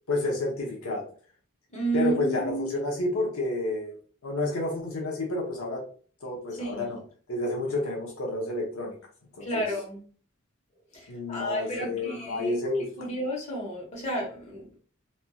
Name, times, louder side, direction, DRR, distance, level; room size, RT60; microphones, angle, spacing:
voice 1, 0.1-1.1 1.9-5.9 6.2-7.0 7.3-9.0 9.3-9.7 11.1-12.9, left 2 dB, 80° left, -1 dB, 0.8 m, -30 dB
voice 2, 1.7-2.9 6.6-7.0 9.4-10.0 10.9-12.6 13.0-14.8, right 2 dB, 35° left, -2 dB, 1.1 m, -32 dB
3.1 x 2.6 x 2.2 m, 0.42 s
head